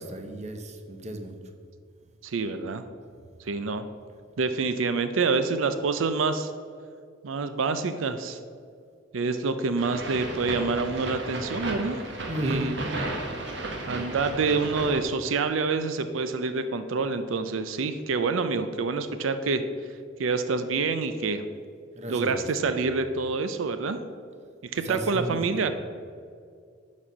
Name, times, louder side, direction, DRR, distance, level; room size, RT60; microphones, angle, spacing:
voice 1, 0.0-1.4 12.3-12.7 22.0-22.7 24.8-25.5, right 1 dB, 35° right, 5 dB, 0.8 m, -34 dB
voice 2, 2.2-2.8 3.4-3.9 4.4-6.5 7.2-8.4 9.1-12.0 12.4-12.8 13.9-19.6 20.2-21.5 22.1-24.0 24.7-25.7, right 4 dB, 90° right, 10 dB, 0.5 m, -27 dB
sound 1, 9.8-15.0, right 2 dB, 60° right, 1.3 m, -34 dB
11.0 x 4.3 x 6.1 m, 2.2 s
head